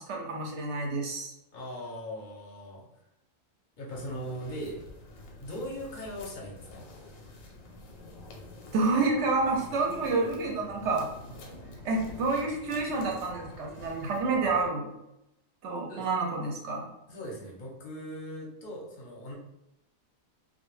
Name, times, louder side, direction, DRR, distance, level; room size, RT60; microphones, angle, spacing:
voice 1, 0.0-1.3 8.7-11.1 11.8-14.9 15.6-16.9, right 3 dB, 65° right, 0 dB, 0.8 m, -29 dB
voice 2, 1.5-2.9 3.8-4.8 5.4-6.9 15.9-16.1 17.1-19.3, equal, 50° left, -3 dB, 0.7 m, -39 dB
sound 1, 3.9-14.7, left 1 dB, 85° left, 1.0 m, -47 dB
2.2 x 2.2 x 3.0 m, 0.86 s
omnidirectional pair, 1.4 m